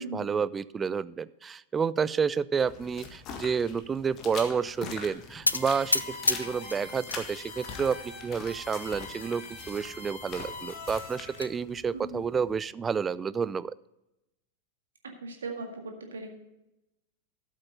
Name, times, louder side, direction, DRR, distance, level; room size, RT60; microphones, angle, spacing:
voice 1, 0.0-13.7, right 6 dB, 20° right, 18 dB, 0.4 m, -30 dB
sound 1, 2.6-12.6, left 5 dB, 35° left, 1.7 m, -44 dB
sound 2, 5.5-7.2 7.6-8.3 8.8-8.9 9.2-9.3 9.7-9.8 10.9-11.5, left 2 dB, 85° left, 0.4 m, -30 dB
sound 3, 5.5-11.4, left 2 dB, 50° left, 3.0 m, -43 dB
voice 2, 15.2-16.3, right 3 dB, 70° right, 3 dB, 1.8 m, -38 dB
13.5 x 7.4 x 3.9 m, 0.90 s
figure-of-eight pair, 90°, 0 cm